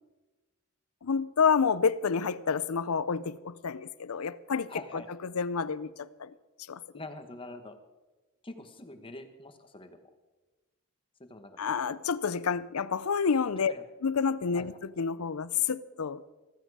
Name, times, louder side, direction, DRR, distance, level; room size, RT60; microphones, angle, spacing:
voice 1, 1.0-4.7 5.2-6.3 6.7-6.8 11.6-13.7 14.0-16.2, left 6 dB, 90° left, 0.6 m, -29 dB
voice 2, 4.7-5.1 6.9-7.8 8.4-10.0 11.2-11.6 11.8-12.0 13.7-13.8 14.5-14.7, left 2 dB, 25° left, 1.3 m, -44 dB
15.0 x 14.5 x 4.9 m
head